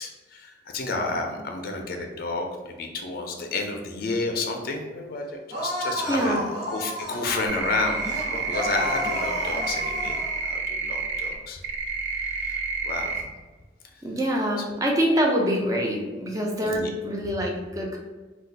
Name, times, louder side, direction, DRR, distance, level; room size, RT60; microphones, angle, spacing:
voice 1, 0.0-8.0 8.3-10.2 10.4-11.6 12.2-13.1 16.7-16.9, left 3 dB, 50° left, 3 dB, 0.4 m, -31 dB
sound 1, 5.5-10.4, equal, 60° right, 1.0 m, -32 dB
voice 2, 6.1-6.4 14.0-18.0, equal, 20° right, -1 dB, 0.5 m, -25 dB
sound 2, 7.5-11.4 11.6-13.2, right 4 dB, 75° right, 0.4 m, -29 dB
2.4 x 2.3 x 3.9 m, 1.3 s
head